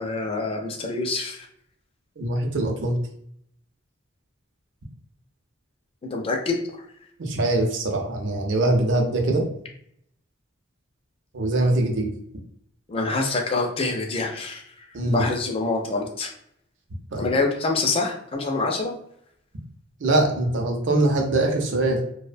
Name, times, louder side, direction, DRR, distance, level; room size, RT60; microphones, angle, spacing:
voice 1, 0.0-1.5 6.0-6.6 12.9-14.6 15.1-16.3 17.2-18.9, left 3 dB, 30° left, 2 dB, 0.4 m, -26 dB
voice 2, 2.2-3.0 7.2-9.4 11.3-12.1 14.9-15.3 17.1-17.3 20.0-22.0, right 2 dB, 60° right, 2 dB, 0.5 m, -22 dB
2.7 x 2.0 x 2.5 m, 0.69 s
head